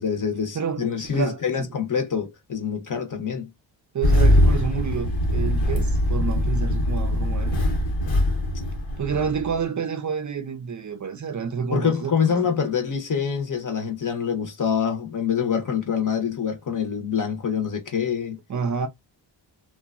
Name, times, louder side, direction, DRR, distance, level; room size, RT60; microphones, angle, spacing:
voice 1, 0.0-3.5 11.7-18.4, left 7 dB, 45° left, 0.7 m, -25 dB
voice 2, 0.5-1.7 3.9-7.6 9.0-12.5 18.5-18.9, right 6 dB, 40° right, 0.5 m, -29 dB
Engine starting, 4.0-9.6, left 1 dB, 80° left, 1.0 m, -21 dB
2.9 x 2.2 x 2.3 m
wide cardioid pair, 95°, 46 cm